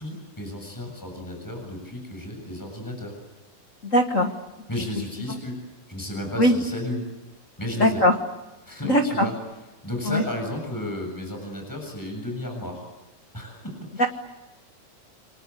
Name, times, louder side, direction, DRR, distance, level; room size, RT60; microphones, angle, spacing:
voice 1, 0.0-3.1 4.7-5.6 5.9-7.1 7.6-8.0 8.7-9.3 9.8-12.8 13.3-14.1, left 1 dB, 5° left, 3 dB, 7.3 m, -33 dB
voice 2, 3.8-4.3 6.4-6.5 7.8-8.2 8.8-9.3 10.0-10.2 14.0-14.1, equal, 35° left, 4 dB, 1.3 m, -20 dB
29.0 x 24.0 x 8.4 m, 1.1 s
omnidirectional pair, 3.7 m